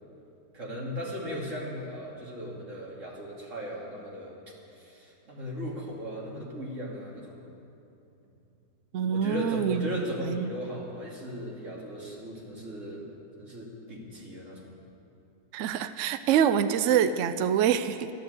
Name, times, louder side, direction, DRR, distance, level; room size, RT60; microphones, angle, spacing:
voice 1, 0.5-4.3 4.7-7.5 9.1-13.0 13.4-14.7, equal, 45° right, -4 dB, 3.0 m, -37 dB
voice 2, 8.9-10.5 15.5-18.1, right 8 dB, 75° right, 11 dB, 0.7 m, -26 dB
12.5 x 12.0 x 8.0 m, 2.8 s
omnidirectional pair, 1.8 m